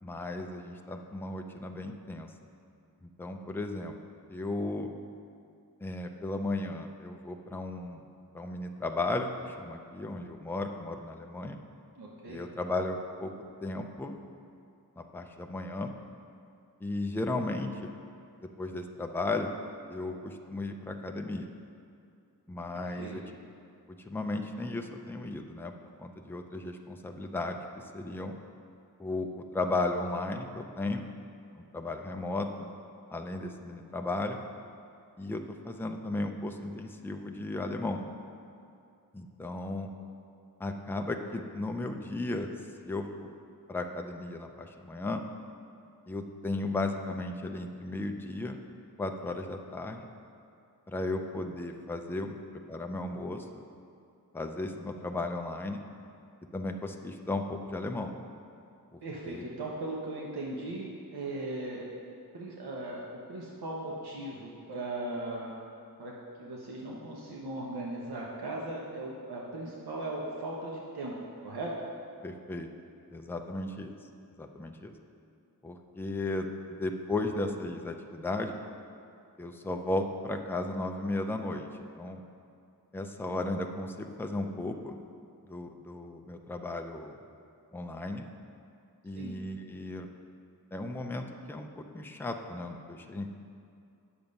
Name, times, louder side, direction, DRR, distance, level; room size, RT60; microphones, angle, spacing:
voice 1, 0.0-2.3 3.0-4.0 4.3-4.9 5.8-8.0 8.3-11.6 12.3-13.3 13.6-14.2 15.0-15.9 16.8-18.0 18.4-19.5 19.9-21.5 22.5-23.4 23.9-25.7 26.0-28.3 29.0-31.1 31.5-32.7 33.1-34.4 35.2-38.0 39.1-39.9 40.6-42.5 42.9-43.3 43.7-45.2 46.1-48.6 49.0-50.1 50.9-52.4 52.7-53.6 54.3-55.8 56.5-58.1 58.9-59.4 72.2-72.7 73.1-73.9 74.4-74.9 75.6-78.6 79.4-82.2 82.9-85.0 85.5-87.2 87.7-88.3 89.0-90.1 90.7-93.3, left 2 dB, 5° left, 4 dB, 0.4 m, -35 dB
voice 2, 12.0-12.4 22.8-23.1 59.0-61.8 62.3-65.5 66.0-71.1 71.4-71.7 89.1-89.3, right 2 dB, 90° right, -3 dB, 1.1 m, -38 dB
9.0 x 6.9 x 5.3 m, 2.5 s
wide cardioid pair, 175°, 38 cm